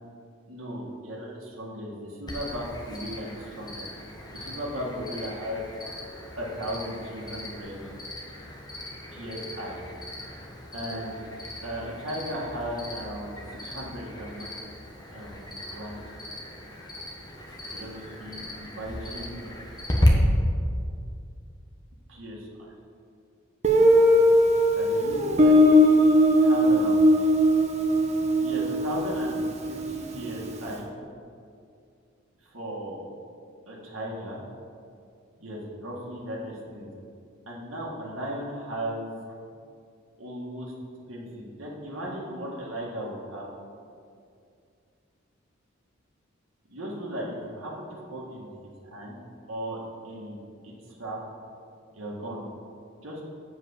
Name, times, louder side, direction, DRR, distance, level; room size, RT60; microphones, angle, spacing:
voice 1, 0.5-3.9 4.3-5.7 6.4-7.9 9.1-9.8 10.7-11.2 11.6-13.3 13.6-14.5 15.1-16.0 17.7-19.5 22.1-22.5 24.7-26.0 26.4-27.3 28.4-30.9 32.5-33.0 33.7-34.4 35.4-36.9 37.5-39.2 40.2-40.7 41.1-43.5 46.7-48.5 48.9-49.2 49.5-49.8 50.0-50.4 50.6-50.7 51.0-51.2 51.9-52.4 53.0-53.2, equal, 85° right, -4 dB, 1.7 m, -36 dB
Cricket, 2.3-20.1, left 1 dB, 20° left, 1.2 m, -36 dB
Guitar, 23.6-30.3, equal, 35° right, 0.8 m, -20 dB
7.6 x 5.2 x 7.1 m, 2.4 s
head